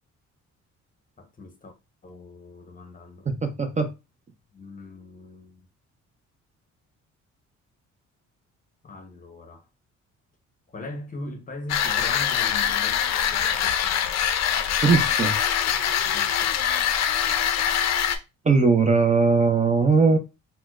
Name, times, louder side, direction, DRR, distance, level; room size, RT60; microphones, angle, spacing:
voice 1, 1.2-1.7 2.0-3.3 4.5-5.7 8.8-9.7 10.7-13.0 13.3-13.9 16.0-16.6, left 2 dB, 25° left, 0.7 m, -40 dB
voice 2, 3.3-3.9 14.8-15.4 18.4-20.2, right 4 dB, 25° right, 0.4 m, -19 dB
sound 1, 11.7-18.2, left 9 dB, 60° left, 0.5 m, -23 dB
4.2 x 2.1 x 2.2 m
cardioid pair, 90°, 30 cm